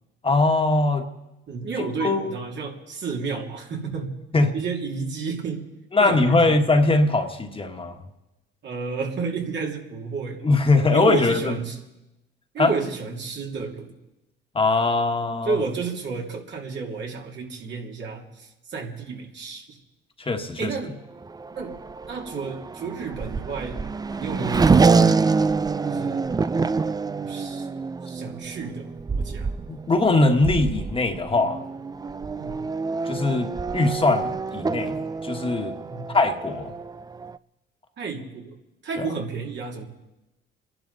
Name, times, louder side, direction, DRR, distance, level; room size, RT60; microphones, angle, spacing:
voice 1, 0.2-1.0 2.0-2.4 4.3-4.5 5.9-8.0 10.4-11.6 12.6-12.7 14.5-15.6 20.2-20.7 29.7-31.6 33.1-35.7 36.1-36.7 39.0-39.1, left 3 dB, 25° left, 4 dB, 1.5 m, -21 dB
voice 2, 1.5-4.2 4.5-5.6 6.0-6.6 8.6-10.4 10.9-11.8 12.5-13.9 15.4-19.8 20.6-21.0 21.5-21.8 22.1-23.8 24.2-25.2 25.9-26.3 26.7-27.7 28.0-29.5 32.4-32.7 35.8-36.2 38.0-38.5 38.8-39.8, right 5 dB, 65° right, 0 dB, 2.8 m, -31 dB
Race car auto racing / Accelerating revving vroom, 21.2-37.4, right 4 dB, 20° right, 0.4 m, -26 dB
27.5 x 11.0 x 4.0 m, 0.96 s
cardioid pair, 90°, 20 cm